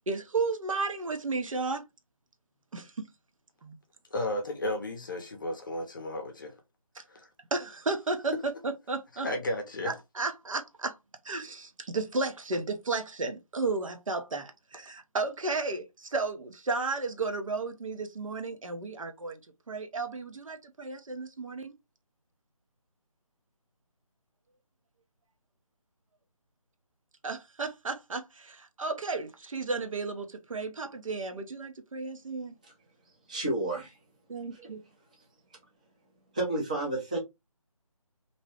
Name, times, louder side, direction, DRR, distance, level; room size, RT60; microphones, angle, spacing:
voice 1, 0.1-1.9 2.7-3.1 3.6-3.7 7.0-7.1 7.5-9.3 9.8-11.0 11.2-19.4 19.7-21.7 27.2-32.5 34.3-34.8, right 3 dB, 65° right, 0.7 m, -33 dB
voice 2, 4.1-6.5 7.1-7.3 9.2-9.9, left 1 dB, 35° left, 0.6 m, -33 dB
voice 3, 33.3-34.0 34.5-34.7 36.3-37.2, right 2 dB, 15° right, 0.5 m, -31 dB
2.6 x 2.1 x 3.3 m
figure-of-eight pair, 160°, 19 cm